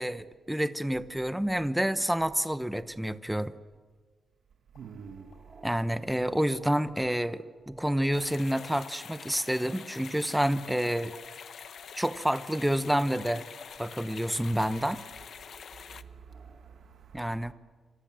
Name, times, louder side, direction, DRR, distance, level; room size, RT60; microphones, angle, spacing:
voice 1, 0.0-3.5 5.6-11.1 11.9-13.4 13.8-15.0 17.1-17.5, equal, 5° right, 0.9 m, -28 dB
sound 1, 4.7-4.9 5.3-5.4 6.3-7.4 8.6-9.6 10.8-11.1 11.6-11.8 12.1-12.4 12.7-12.8, left 6 dB, 80° left, 4.9 m, -59 dB
voice 2, 4.8-5.3 16.0-17.5, right 6 dB, 70° right, 1.9 m, -48 dB
sound 2, 5.0-16.8, right 1 dB, 20° right, 5.3 m, -59 dB
sound 3, 8.1-16.0, left 7 dB, 60° left, 0.9 m, -46 dB
27.5 x 26.0 x 7.6 m
wide cardioid pair, 160°, 0 cm